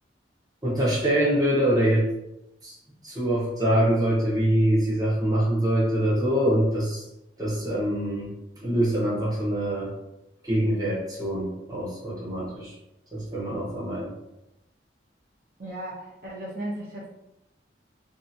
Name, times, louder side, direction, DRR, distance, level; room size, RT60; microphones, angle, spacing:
voice 1, 0.6-2.1 2.6-2.8 3.0-7.0 7.4-8.3 8.6-9.9 10.4-12.7 13.1-14.1, right 1 dB, 20° right, -5 dB, 0.9 m, -24 dB
voice 2, 15.6-17.1, right 1 dB, 55° right, -5 dB, 0.7 m, -35 dB
2.8 x 2.4 x 2.6 m, 0.89 s
head